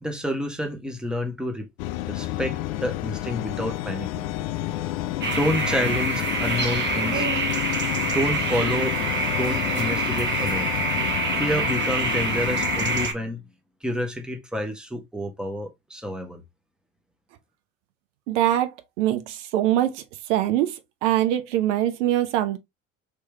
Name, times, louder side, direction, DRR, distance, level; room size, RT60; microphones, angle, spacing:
voice 1, 0.0-1.7 2.1-4.3 5.2-7.3 8.1-9.0 9.4-10.7 11.4-13.4 13.8-16.4, left 1 dB, ahead, 1.0 m, -29 dB
sound 1, 1.8-13.1, left 15 dB, 55° left, 0.5 m, -30 dB
sound 2, 5.2-13.1, right 3 dB, 25° right, 1.2 m, -26 dB
voice 2, 18.3-18.7 19.0-20.0 20.3-20.7 21.0-22.6, right 13 dB, 65° right, 0.8 m, -22 dB
3.4 x 3.1 x 3.2 m
figure-of-eight pair, 70°, 39 cm